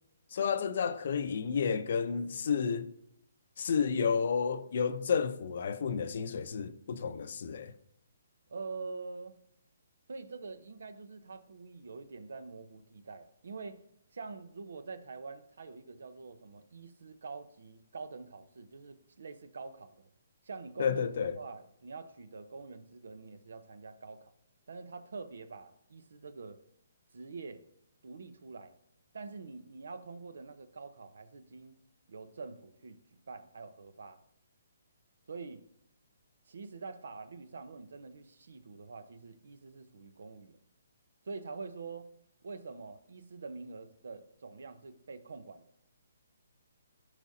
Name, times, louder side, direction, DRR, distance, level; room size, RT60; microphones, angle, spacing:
voice 1, 0.3-2.9 3.6-7.7 20.8-21.4, left 6 dB, 55° left, 0.6 m, -31 dB
voice 2, 8.5-9.4 10.1-13.8 14.1-20.1 20.4-21.1 21.3-24.3 24.7-26.6 27.1-27.6 28.0-28.7 29.1-31.8 32.1-33.0 33.3-34.2 35.3-35.6 36.5-40.6 41.2-42.1 42.4-45.7, right 4 dB, 75° right, 0.9 m, -45 dB
13.0 x 5.0 x 2.8 m
hypercardioid pair, 165°, 0 cm